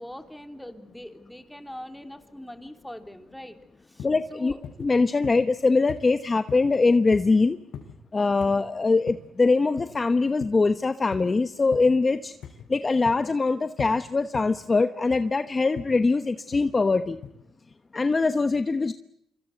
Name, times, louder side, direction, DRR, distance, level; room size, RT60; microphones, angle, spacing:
voice 1, 0.0-4.6, left 1 dB, 5° left, 6 dB, 3.3 m, -42 dB
sound 1, 4.0-4.2 4.6-4.9 5.2-5.6 5.9-6.1 6.5-6.7 7.1-7.3 7.7-8.0 8.4-8.6 9.1-9.3 9.8-10.0 10.4-10.7 11.1-11.3 11.7-11.9 12.4-12.7 13.1-13.4 13.8-14.0 14.3-14.6 15.1-15.3 15.8-16.0 16.5-16.8 17.2-17.3, left 8 dB, 75° left, 6.1 m, -40 dB
voice 2, 4.0-4.5 4.8-7.6 8.1-12.3 12.7-17.2 17.9-18.9, left 3 dB, 30° left, 10 dB, 1.0 m, -22 dB
27.5 x 24.5 x 8.0 m, 0.79 s
cardioid pair, 90°, 0 cm